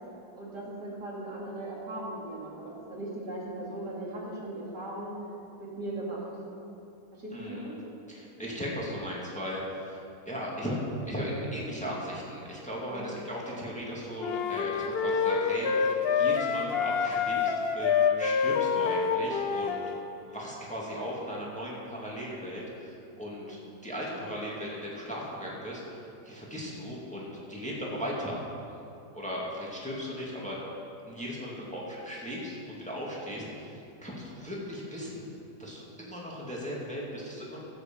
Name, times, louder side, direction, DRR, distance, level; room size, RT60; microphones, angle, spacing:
voice 1, 0.3-5.1 5.6-6.2 7.2-7.8 12.9-13.1 23.4-23.6, right 1 dB, 80° right, -5 dB, 3.2 m, -38 dB
voice 2, 7.3-7.7 8.1-10.0 10.3-10.8 11.0-19.8 20.3-28.4 29.1-30.6 31.1-35.3 35.6-37.6, equal, 5° left, -5 dB, 2.1 m, -37 dB
sound 1, 14.2-20.0, left 6 dB, 60° left, 0.6 m, -27 dB
15.5 x 6.6 x 7.5 m, 2.8 s
omnidirectional pair, 1.8 m